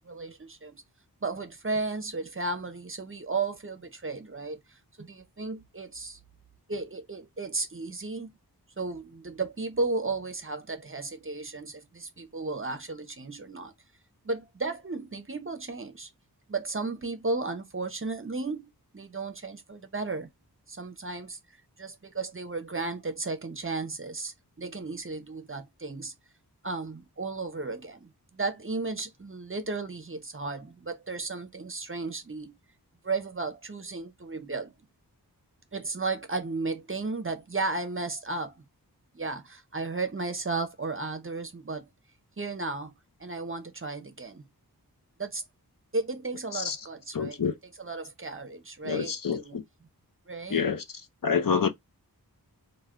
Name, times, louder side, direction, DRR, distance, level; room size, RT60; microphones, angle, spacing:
voice 1, 0.0-0.8 1.2-6.2 6.7-8.3 8.8-13.7 14.2-16.1 16.5-20.3 20.7-21.4 21.8-26.1 26.6-32.5 33.0-34.7 35.7-38.6 39.1-41.9 42.4-42.9 43.2-44.5 45.2-45.4 45.9-47.4 47.8-49.6 50.3-50.6, right 3 dB, 35° right, 0.6 m, -34 dB
voice 2, 47.1-47.6 48.8-49.6 50.5-50.8 51.2-51.7, left 6 dB, 55° left, 0.6 m, -27 dB
2.2 x 2.2 x 3.5 m
wide cardioid pair, 50°, 39 cm